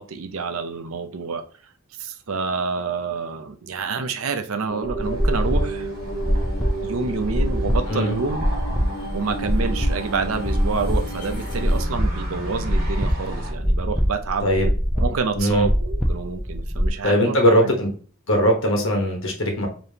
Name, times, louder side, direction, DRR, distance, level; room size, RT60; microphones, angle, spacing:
voice 1, 0.0-1.4 2.0-5.9 6.8-8.4 9.1-14.5 15.0-17.5, right 4 dB, 90° right, 0.6 m, -28 dB
sound 1, 4.7-11.8, right 2 dB, 40° left, 1.2 m, -33 dB
sound 2, 4.8-16.9, equal, ahead, 0.5 m, -24 dB
sound 3, 5.0-13.5, equal, 50° right, 1.4 m, -36 dB
voice 2, 15.3-15.7 17.0-17.9 18.3-19.7, equal, 65° left, 1.2 m, -20 dB
5.1 x 3.0 x 2.8 m
head